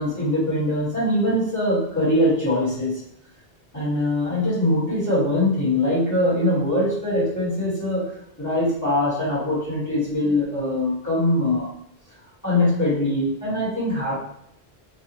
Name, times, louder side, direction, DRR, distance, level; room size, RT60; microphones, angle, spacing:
voice 1, 0.0-2.9 3.7-8.1 8.4-11.7 12.4-14.2, left 1 dB, 15° left, -10 dB, 1.3 m, -22 dB
2.5 x 2.3 x 2.9 m, 0.78 s
omnidirectional pair, 1.0 m